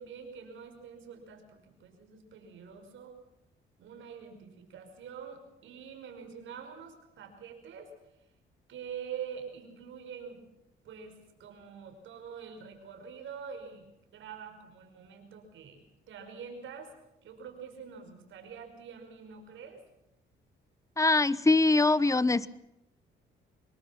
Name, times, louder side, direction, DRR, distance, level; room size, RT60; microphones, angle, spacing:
voice 1, 0.0-3.2 3.8-7.9 8.7-10.4 10.8-13.9 14.1-16.9 17.2-19.8, right 7 dB, 75° right, 5 dB, 5.6 m, -45 dB
voice 2, 21.0-22.5, left 3 dB, 15° left, 18 dB, 1.0 m, -23 dB
25.0 x 22.0 x 6.0 m, 0.85 s
cardioid pair, 90°, 20 cm